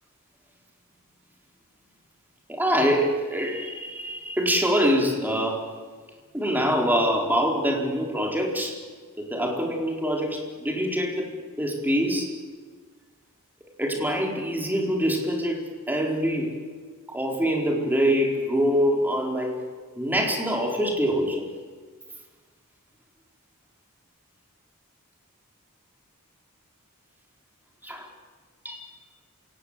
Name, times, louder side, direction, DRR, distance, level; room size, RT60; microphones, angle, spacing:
voice 1, 2.5-5.7 6.3-8.8 9.2-12.4 13.8-16.6 17.1-19.6 20.0-21.5 27.8-28.1 28.6-28.8, equal, 10° right, 0 dB, 4.4 m, -25 dB
26.5 x 18.0 x 8.4 m, 1.5 s
head